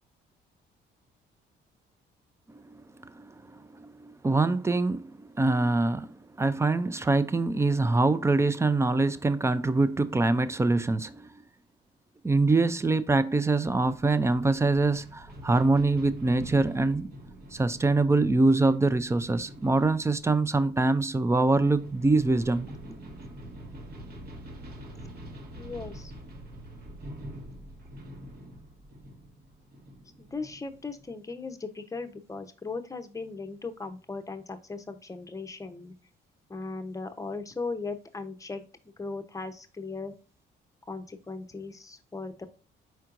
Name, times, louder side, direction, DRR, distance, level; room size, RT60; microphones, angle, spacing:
voice 1, 3.8-11.2 12.2-17.1 17.5-22.7, right 3 dB, 15° right, 0.4 m, -24 dB
sound 1, 13.6-31.2, right 1 dB, 50° right, 1.2 m, -45 dB
voice 2, 25.5-26.1 30.2-35.9 36.5-38.6 39.0-40.1 40.9-42.5, left 3 dB, 15° left, 0.7 m, -38 dB
4.6 x 4.4 x 2.5 m
cardioid pair, 90°, 20 cm